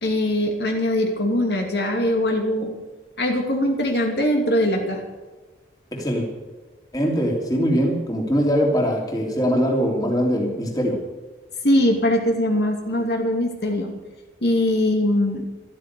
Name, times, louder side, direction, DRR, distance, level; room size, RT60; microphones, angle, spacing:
voice 1, 0.0-2.8 3.2-5.0 11.6-13.9 14.4-15.5, left 1 dB, 65° left, 2 dB, 2.7 m, -21 dB
voice 2, 5.9-6.3 6.9-11.0, equal, 20° left, 0 dB, 3.3 m, -22 dB
14.5 x 13.0 x 6.9 m, 1.2 s
head